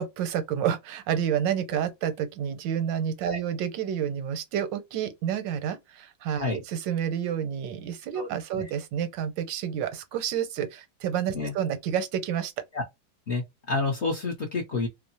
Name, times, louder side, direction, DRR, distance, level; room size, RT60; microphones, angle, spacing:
voice 1, 0.0-12.5, right 9 dB, 85° right, 1.3 m, -29 dB
voice 2, 13.3-14.9, left 3 dB, 55° left, 0.8 m, -29 dB
3.0 x 2.0 x 2.5 m
omnidirectional pair, 2.0 m